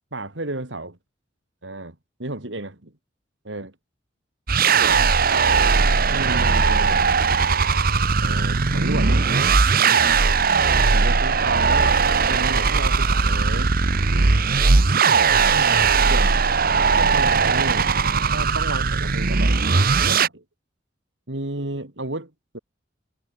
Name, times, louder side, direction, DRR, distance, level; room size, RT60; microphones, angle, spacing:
voice 1, 0.1-1.0 1.6-2.9 3.4-3.7 4.6-5.0 6.1-7.2 8.2-9.3 9.7-10.2 10.9-13.8 16.1-16.5 17.0-17.9 18.3-19.6 20.0-20.4 21.3-22.6, right 2 dB, 80° right, 3.2 m, -32 dB
sound 1, 4.5-20.3, right 4 dB, 55° right, 1.1 m, -19 dB
head